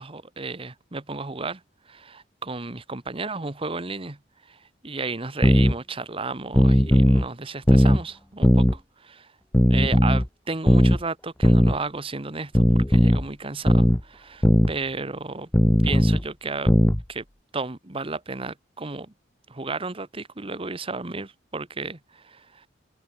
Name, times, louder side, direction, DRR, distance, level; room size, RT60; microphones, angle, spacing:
voice 1, 0.0-1.6 1.9-4.2 4.4-9.3 9.7-15.5 15.8-16.7 17.1-17.2 17.5-19.1 19.5-22.7, right 3 dB, 30° right, 1.2 m, -33 dB
sound 1, 5.4-5.7 6.5-7.3 7.7-8.0 8.4-8.8 9.5-10.3 10.7-11.0 11.4-11.8 12.5-13.2 13.7-14.0 14.4-14.7 15.5-16.2 16.7-17.0, left 1 dB, 10° left, 0.6 m, -17 dB
head